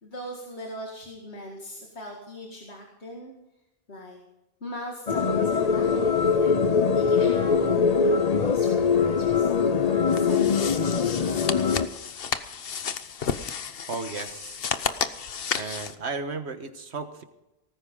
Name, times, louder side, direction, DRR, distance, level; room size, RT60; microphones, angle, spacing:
voice 1, 0.0-3.3 3.9-4.2 4.6-6.4 6.9-11.9, equal, 90° left, 0 dB, 2.4 m, -40 dB
sound 1, 5.1-11.9, left 5 dB, 40° left, 0.8 m, -22 dB
sound 2, 10.1-16.0, left 7 dB, 60° left, 1.1 m, -32 dB
voice 2, 13.8-14.6 15.5-17.2, right 4 dB, 90° right, 8 dB, 1.6 m, -34 dB
18.5 x 15.0 x 3.8 m, 0.96 s
omnidirectional pair, 1.1 m